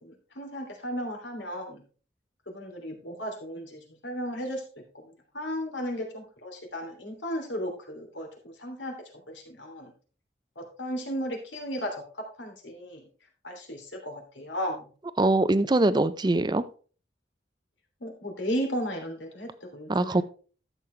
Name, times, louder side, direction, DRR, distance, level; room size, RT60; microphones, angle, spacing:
voice 1, 0.0-1.8 2.5-4.6 5.3-8.9 9.3-9.9 10.6-11.9 12.4-13.0 13.4-14.9 18.0-20.2, equal, 85° left, 2.9 m, -35 dB
voice 2, 15.2-16.6 19.9-20.2, right 2 dB, 25° right, 0.5 m, -22 dB
12.0 x 7.3 x 3.3 m
head